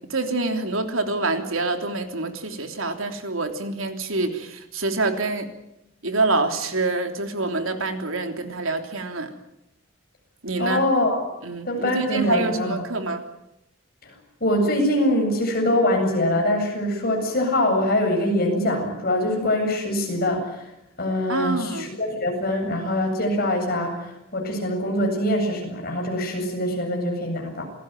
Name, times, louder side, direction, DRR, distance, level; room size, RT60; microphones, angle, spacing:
voice 1, 0.1-5.5 6.0-9.3 10.4-10.8 11.4-13.2 21.3-21.9, right 2 dB, 75° right, 6 dB, 3.2 m, -26 dB
voice 2, 10.6-11.3 11.6-12.8 14.0-14.1 14.4-20.7 21.0-27.6, left 1 dB, 45° left, 2 dB, 7.9 m, -23 dB
27.5 x 19.0 x 9.2 m, 0.85 s
head